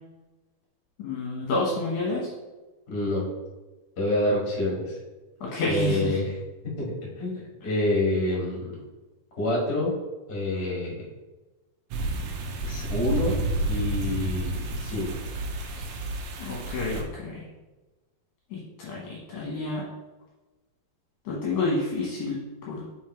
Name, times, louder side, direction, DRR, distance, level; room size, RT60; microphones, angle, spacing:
voice 1, 1.0-2.3 5.4-6.2 16.4-17.4 18.5-19.8 21.3-22.4 22.7-22.8, left 2 dB, 65° left, -4 dB, 2.3 m, -29 dB
voice 2, 2.9-3.3 4.0-5.0 5.6-6.3 6.8-6.9 7.2-8.7 9.4-9.9 10.3-11.0 12.6-13.4 13.6-15.2 15.7-15.9, left 1 dB, 35° left, -4 dB, 1.9 m, -27 dB
sound 1, 11.9-17.0, right 2 dB, 75° right, 2.2 m, -30 dB
5.7 x 5.2 x 4.4 m, 1.2 s
omnidirectional pair, 4.6 m